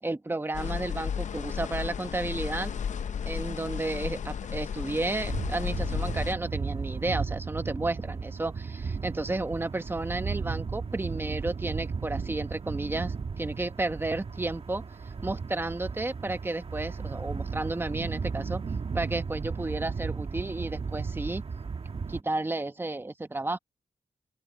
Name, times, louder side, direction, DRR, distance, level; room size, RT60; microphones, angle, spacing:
voice 1, 0.0-2.7 3.2-14.8 15.2-18.6 18.9-21.4 22.1-23.6, right 2 dB, 15° right, 1.1 m, -32 dB
sound 1, 0.5-6.3, left 7 dB, 65° left, 0.6 m, -33 dB
sound 2, 5.3-22.2, right 5 dB, 45° right, 1.5 m, -35 dB
open air
wide cardioid pair, 145°, 13 cm